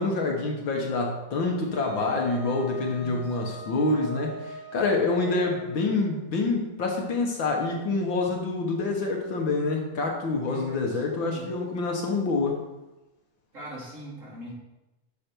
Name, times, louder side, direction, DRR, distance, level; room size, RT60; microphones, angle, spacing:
voice 1, 0.0-12.6, left 3 dB, 65° left, 1 dB, 1.9 m, -27 dB
Wind instrument woodwind instrument, 1.7-6.1, right 1 dB, ahead, 3.2 m, -43 dB
voice 2, 2.9-3.4 10.5-11.5 12.4-12.5 13.5-14.5, left 2 dB, 35° right, -6 dB, 3.4 m, -41 dB
10.5 x 6.6 x 4.5 m, 1.0 s
omnidirectional pair, 2.4 m